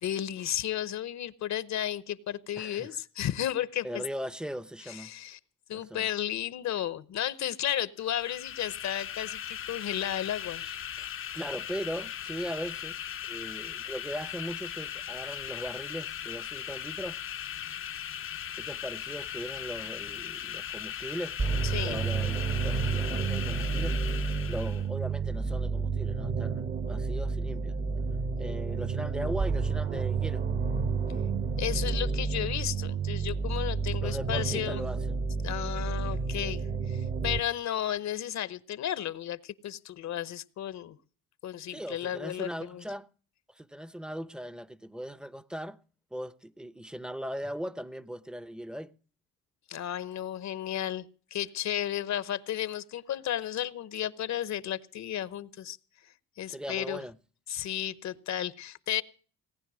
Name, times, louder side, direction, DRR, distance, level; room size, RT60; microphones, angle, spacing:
voice 1, 0.0-4.0 4.9-5.4 5.7-10.6 21.7-22.0 31.6-34.8 35.4-41.0 41.4-42.8 49.7-51.1 51.3-55.8 56.4-57.0 57.5-59.0, left 11 dB, 60° left, 0.9 m, -33 dB
voice 2, 2.6-3.0 3.8-5.1 5.7-6.1 10.6-11.1 11.3-13.0 13.2-17.2 18.6-21.4 21.8-27.8 28.4-30.5 34.0-35.3 41.7-43.1 43.5-45.8 46.1-48.9 56.5-57.2, equal, 5° right, 0.7 m, -39 dB
sound 1, 8.0-24.9, left 10 dB, 40° left, 0.6 m, -38 dB
sound 2, 21.4-37.4, right 5 dB, 30° right, 0.9 m, -30 dB
18.5 x 9.9 x 6.2 m
cardioid pair, 105°, 32 cm